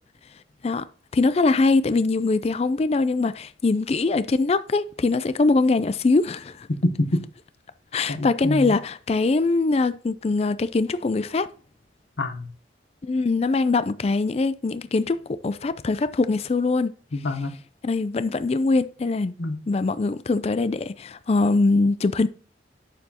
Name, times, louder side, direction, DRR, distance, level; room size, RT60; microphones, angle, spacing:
voice 1, 1.1-6.7 7.9-11.5 13.0-15.2 15.4-16.9 17.8-19.3 19.7-22.3, left 3 dB, 35° left, 0.4 m, -22 dB
voice 2, 6.7-7.2 8.1-8.7 12.2-12.5 17.1-17.6 19.4-19.6, left 1 dB, 70° left, 1.0 m, -26 dB
9.4 x 6.8 x 2.8 m
head